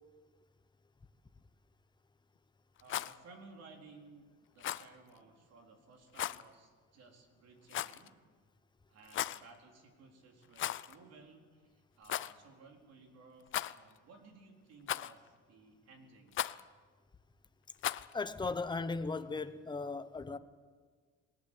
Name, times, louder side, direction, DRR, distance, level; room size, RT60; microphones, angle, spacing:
Rattle, 2.8-3.2 4.6-4.9 6.1-6.4 7.7-8.1 9.0-9.4 10.5-11.0 11.2-11.3 12.0-12.3 13.5-14.0 14.9-15.3 16.3-16.6 17.8-18.1, left 12 dB, 45° left, 0.6 m, -37 dB
voice 1, 2.8-4.2 4.5-8.1 8.9-16.4, right 3 dB, 60° right, 4.3 m, -58 dB
voice 2, 18.1-20.4, left 3 dB, 15° left, 0.9 m, -37 dB
20.5 x 19.5 x 8.5 m
cardioid pair, 145°, 29 cm